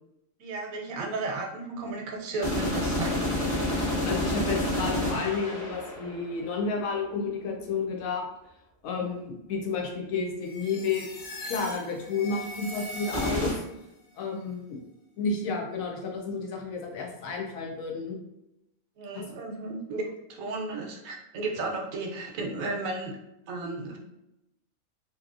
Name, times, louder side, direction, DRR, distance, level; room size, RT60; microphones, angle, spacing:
voice 1, 0.4-3.3 19.0-23.2 23.5-24.0, right 3 dB, 80° right, 2 dB, 1.0 m, -34 dB
sound 1, 2.4-6.5 13.1-13.5, left 1 dB, 30° left, 0.8 m, -29 dB
voice 2, 4.0-8.2 8.8-11.1 11.4-13.6 14.2-14.8 15.2-18.2 19.1-19.2, left 4 dB, 80° left, 0 dB, 1.1 m, -31 dB
sound 2, 10.4-13.8, left 1 dB, 55° left, 0.6 m, -40 dB
2.9 x 2.7 x 2.4 m, 0.86 s
omnidirectional pair, 1.4 m